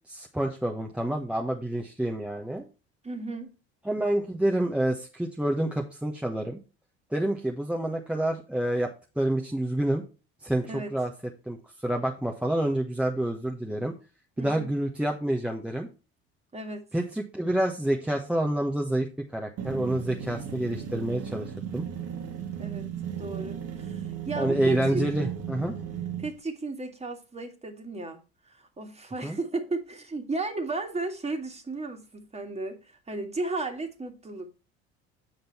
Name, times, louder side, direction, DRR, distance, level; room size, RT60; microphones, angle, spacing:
voice 1, 0.1-2.7 3.8-6.6 7.1-8.9 9.2-10.0 10.4-11.1 11.5-11.6 11.8-13.9 14.4-15.9 16.9-19.1 19.3-21.9 24.4-25.7 29.2-29.4, right 1 dB, 5° right, 1.1 m, -28 dB
voice 2, 3.0-3.5 10.7-10.9 14.4-14.7 16.5-16.9 22.6-22.9 23.2-25.0 26.2-28.2 28.5-34.5, right 2 dB, 20° right, 2.0 m, -34 dB
sound 1, 19.6-26.3, right 8 dB, 50° right, 1.5 m, -35 dB
7.8 x 5.3 x 4.3 m
hypercardioid pair, 75°, 32 cm